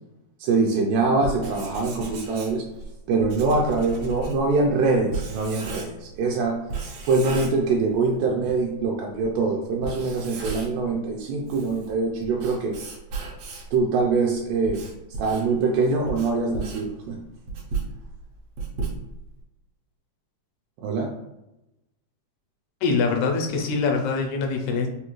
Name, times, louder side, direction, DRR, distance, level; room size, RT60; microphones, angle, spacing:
voice 1, 0.4-2.6 3.1-6.6 7.0-12.7 13.7-14.8 15.2-17.2 20.8-21.1, right 3 dB, 85° right, 0 dB, 2.2 m, -23 dB
Writing, 1.1-6.2 6.7-8.1 8.5-8.6 9.2-9.3 9.7-10.9 11.3-13.8 14.4-19.4, right 4 dB, 70° right, 1.5 m, -34 dB
voice 2, 22.8-24.9, left 4 dB, 80° left, 2 dB, 1.9 m, -24 dB
5.0 x 2.3 x 3.0 m, 0.92 s
omnidirectional pair, 3.7 m